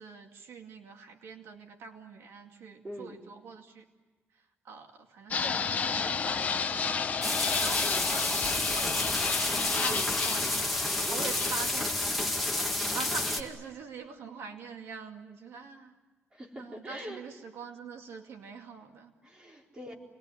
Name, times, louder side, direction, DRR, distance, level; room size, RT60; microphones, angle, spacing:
voice 1, 0.0-3.8 4.3-10.8 11.0-15.9 16.6-19.1, right 5 dB, 70° right, 3 dB, 2.4 m, -44 dB
voice 2, 2.8-3.2 7.8-8.1 9.9-10.1 11.1-11.3 16.3-17.2 19.2-19.9, equal, 20° right, -1 dB, 4.2 m, -43 dB
Fixed-wing aircraft airplane, 5.3-13.2, left 6 dB, 35° left, 0.9 m, -32 dB
sound 1, 7.2-13.4, left 1 dB, ahead, 2.4 m, -30 dB
28.5 x 20.5 x 9.8 m, 1.3 s
cardioid pair, 165°, 4 cm